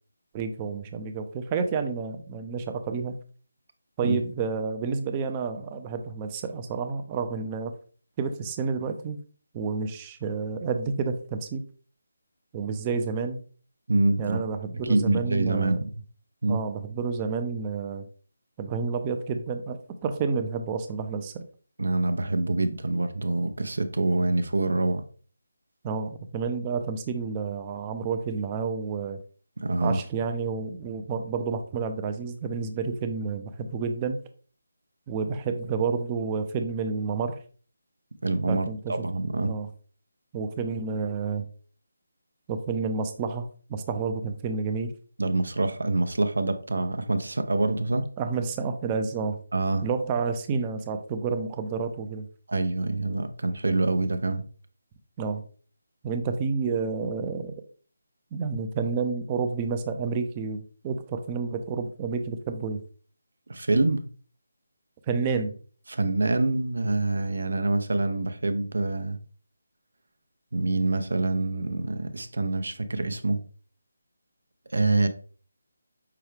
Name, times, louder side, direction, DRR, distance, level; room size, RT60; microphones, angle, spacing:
voice 1, 0.3-3.2 4.0-7.7 8.2-9.2 9.5-11.6 12.5-13.4 14.2-15.8 16.5-18.1 18.6-21.4 25.8-29.2 29.8-34.2 35.1-37.4 38.5-38.9 39.4-39.7 40.3-41.5 42.5-44.9 48.2-49.4 49.8-52.3 55.2-55.4 56.0-57.6 58.3-62.8 65.1-65.5, right 5 dB, 20° right, 0.4 m, -30 dB
voice 2, 13.9-14.4 14.8-15.9 16.4-16.6 21.8-25.0 29.6-30.0 38.2-39.5 45.2-48.1 49.5-49.9 52.5-54.4 63.5-64.0 65.9-69.2 70.5-73.4 74.7-75.1, right 2 dB, 75° right, 0.6 m, -26 dB
5.7 x 2.3 x 3.3 m
figure-of-eight pair, 160°, 0 cm